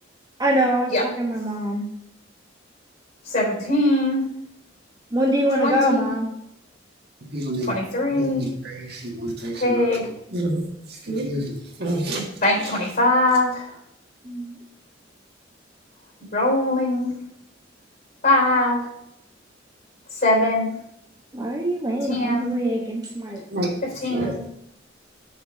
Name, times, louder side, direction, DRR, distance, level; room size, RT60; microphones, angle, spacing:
voice 1, 0.4-1.9 5.1-6.3 14.2-14.6 21.3-23.4 24.1-24.4, equal, 20° right, -1 dB, 1.1 m, -24 dB
voice 2, 3.3-4.2 5.6-6.1 7.7-8.4 9.5-10.1 12.4-13.7 16.3-17.1 18.2-18.8 20.2-20.7 22.1-22.5 23.8-24.4, left 1 dB, 50° left, -1 dB, 3.5 m, -21 dB
voice 3, 7.3-7.7 8.1-9.9 10.3-10.6 11.1-12.2 23.5-23.7 24.1-24.3, right 1 dB, 55° right, -1 dB, 1.7 m, -28 dB
6.6 x 4.5 x 6.2 m, 0.76 s
head